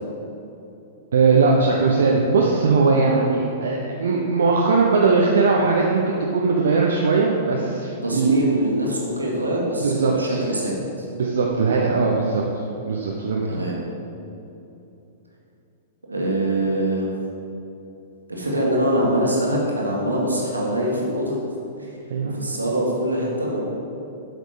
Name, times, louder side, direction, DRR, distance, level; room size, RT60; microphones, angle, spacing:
voice 1, 1.1-8.4 9.8-10.4 11.2-12.4 12.8-13.6 22.1-22.4, right 4 dB, 65° right, -1 dB, 0.8 m, -19 dB
voice 2, 8.0-11.1 13.5-13.8 16.1-17.1 18.3-21.4 22.2-23.6, right 1 dB, 80° right, -2 dB, 1.8 m, -24 dB
8.1 x 6.4 x 5.2 m, 2.9 s
figure-of-eight pair, 105°, 0 cm